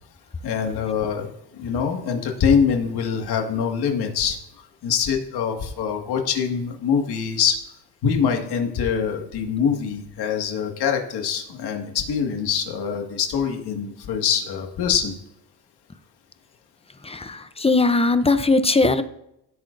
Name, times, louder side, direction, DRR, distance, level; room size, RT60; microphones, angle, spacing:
voice 1, 0.4-4.4 4.8-7.6 8.0-15.1, left 7 dB, 75° left, 2 dB, 2.0 m, -24 dB
voice 2, 17.0-19.0, left 3 dB, 15° left, 11 dB, 0.6 m, -19 dB
16.5 x 8.4 x 2.6 m, 0.79 s
cardioid pair, 120°, 39 cm